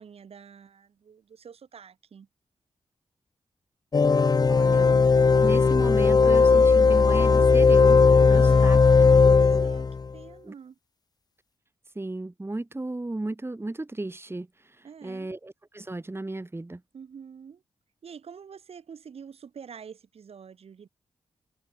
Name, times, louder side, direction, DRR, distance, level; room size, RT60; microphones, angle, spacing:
voice 1, 0.0-2.3 8.2-10.8 14.8-15.3 16.9-17.6 18.0-20.9, right 7 dB, 70° right, 7.9 m, -46 dB
sound 1, 3.9-10.1, left 4 dB, 40° left, 0.7 m, -18 dB
voice 2, 4.5-5.0 5.4-8.8 9.2-9.7 10.4-10.5 11.9-16.8, right 2 dB, 25° right, 4.6 m, -35 dB
cardioid pair, 50°, 10 cm